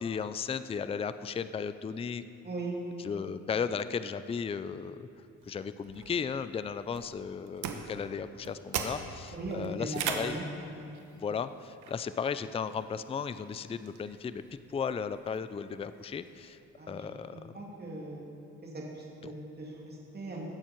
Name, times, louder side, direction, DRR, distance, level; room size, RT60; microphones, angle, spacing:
voice 1, 0.0-2.2 3.0-5.1 5.5-10.4 11.2-16.6 16.9-17.4 19.2-19.3, left 6 dB, 20° left, 13 dB, 0.4 m, -35 dB
sound 1, 5.4-16.6, right 7 dB, 80° right, 1.0 m, -42 dB
voice 2, 9.3-10.4 10.7-10.9 16.8-17.1 17.5-18.2 18.6-20.4, right 2 dB, 35° right, -3 dB, 2.7 m, -39 dB
17.0 x 7.4 x 4.6 m, 2.7 s
cardioid pair, 90°, 30 cm